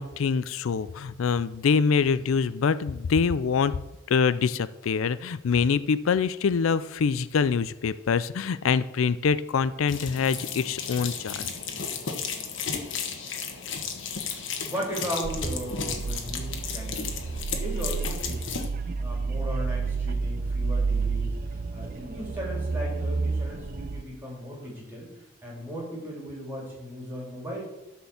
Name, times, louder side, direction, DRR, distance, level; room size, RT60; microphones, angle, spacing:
voice 1, 0.0-3.7 4.1-11.5, left 5 dB, 90° left, 16 dB, 0.4 m, -25 dB
sound 1, 9.9-18.7, left 6 dB, 65° left, 1.3 m, -34 dB
voice 2, 14.7-17.1 17.5-18.7 19.0-25.1 25.4-27.6, equal, 10° right, -3 dB, 3.5 m, -36 dB
sound 2, 15.2-24.0, right 4 dB, 45° right, 0.4 m, -30 dB
12.5 x 4.5 x 7.1 m, 0.94 s
head